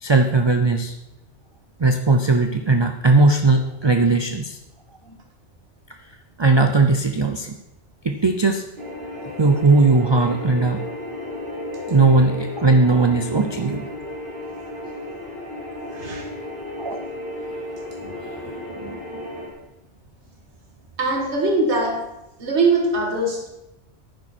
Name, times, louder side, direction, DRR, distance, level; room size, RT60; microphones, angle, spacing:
voice 1, 0.0-0.9 1.8-4.6 5.9-6.0 6.4-7.6 8.0-8.6 9.4-10.8 11.9-13.9 16.8-17.0 18.0-19.2, right 3 dB, 35° right, 6 dB, 0.5 m, -18 dB
sound 1, 8.8-19.5, left 1 dB, 50° right, 2.9 m, -33 dB
voice 2, 15.9-16.3 21.0-22.0 22.4-23.5, right 2 dB, 75° right, 2 dB, 2.1 m, -21 dB
11.0 x 9.3 x 4.4 m, 0.92 s
omnidirectional pair, 1.2 m